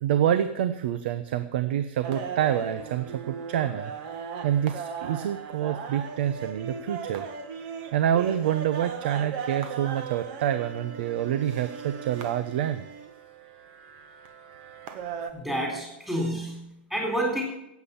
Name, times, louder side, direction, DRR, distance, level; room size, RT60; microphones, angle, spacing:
voice 1, 0.0-7.3 7.9-12.8, right 10 dB, 65° right, 11 dB, 0.9 m, -27 dB
sound 1, 2.0-15.3, right 6 dB, 50° right, 1.6 m, -38 dB
voice 2, 15.3-17.4, right 1 dB, 5° right, -2 dB, 3.9 m, -29 dB
15.5 x 8.5 x 7.1 m, 0.86 s
supercardioid pair, 150°, 6 cm